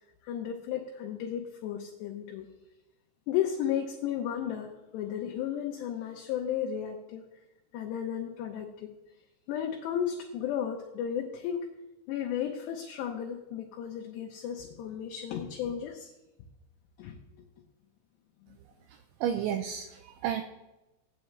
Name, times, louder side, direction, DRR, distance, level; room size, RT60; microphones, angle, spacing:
voice 1, 0.2-2.5 3.3-7.2 7.7-8.9 9.5-11.7 12.1-16.1 17.0-17.2, left 9 dB, 75° left, 2 dB, 2.7 m, -34 dB
voice 2, 18.9-20.4, right 9 dB, 80° right, 7 dB, 2.8 m, -32 dB
16.5 x 10.0 x 3.2 m, 1.0 s
omnidirectional pair, 5.7 m